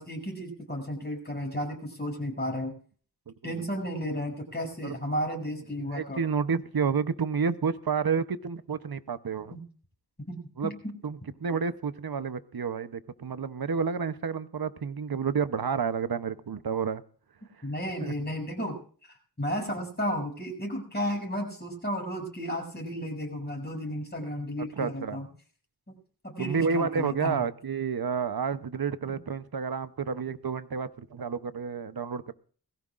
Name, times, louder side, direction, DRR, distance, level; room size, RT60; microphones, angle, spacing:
voice 1, 0.0-2.7 3.4-6.2 9.5-9.6 10.3-10.7 17.6-18.8 19.0-25.3 25.9-26.0 26.2-27.4, equal, 25° left, 1 dB, 7.0 m, -33 dB
voice 2, 3.3-3.7 4.8-4.9 5.9-9.6 10.6-10.8 11.0-17.0 17.6-17.7 18.0-18.1 24.7-25.2 26.4-32.3, right 6 dB, 65° right, 13 dB, 0.9 m, -30 dB
21.0 x 16.0 x 2.5 m, 0.43 s
wide cardioid pair, 45°, 39 cm